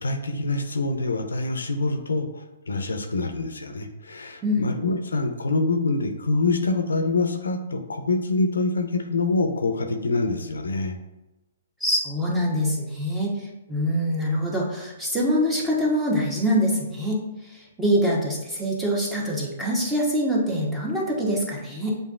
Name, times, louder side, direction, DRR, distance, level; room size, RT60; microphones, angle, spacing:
voice 1, 0.0-11.0, left 3 dB, 80° left, 5 dB, 0.5 m, -25 dB
voice 2, 11.8-17.2 17.5-21.9, equal, 10° right, -4 dB, 1.1 m, -24 dB
6.8 x 2.6 x 2.4 m, 1.0 s
hypercardioid pair, 125°, 0 cm